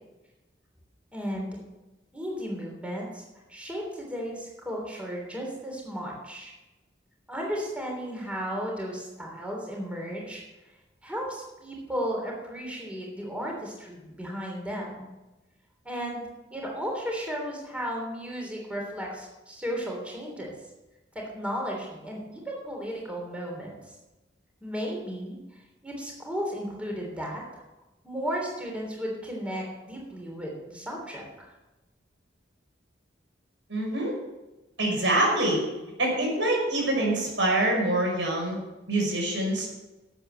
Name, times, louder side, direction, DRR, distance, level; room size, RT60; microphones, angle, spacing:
voice 1, 1.1-1.6 2.1-3.2 3.5-6.5 7.3-10.4 11.0-15.1 15.8-16.2 16.5-20.5 21.1-23.8 24.6-27.4 28.0-31.5, equal, 5° right, -1 dB, 3.3 m, -34 dB
voice 2, 33.7-34.1 34.8-35.6 36.0-38.6 38.9-39.7, right 1 dB, 85° right, 0 dB, 5.4 m, -25 dB
13.0 x 8.2 x 6.8 m, 1.1 s
head